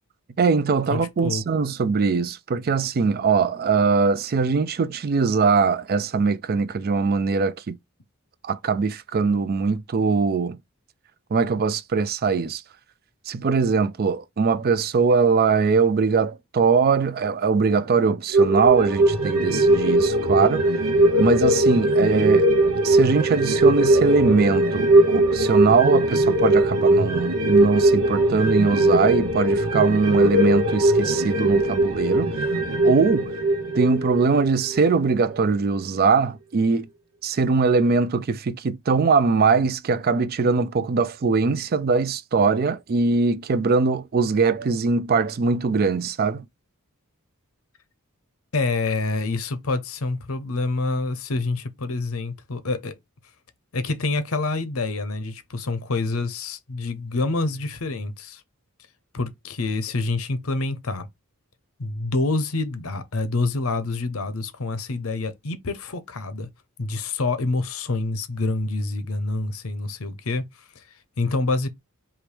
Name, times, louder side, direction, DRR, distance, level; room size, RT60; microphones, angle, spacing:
voice 1, 0.4-7.8 8.4-10.6 11.3-12.6 13.3-20.7 21.2-22.5 22.8-32.3 32.8-33.3 33.7-36.9 37.2-46.4, right 4 dB, 45° right, 0.4 m, -21 dB
voice 2, 0.9-1.4 48.5-53.0 53.7-58.4 59.1-61.1 61.8-66.5 66.8-70.4 70.7-70.8 71.2-71.7, left 3 dB, 70° left, 0.8 m, -27 dB
sound 1, 18.3-35.1 35.5-35.6, right 1 dB, 90° right, 1.0 m, -20 dB
4.8 x 3.0 x 3.2 m
head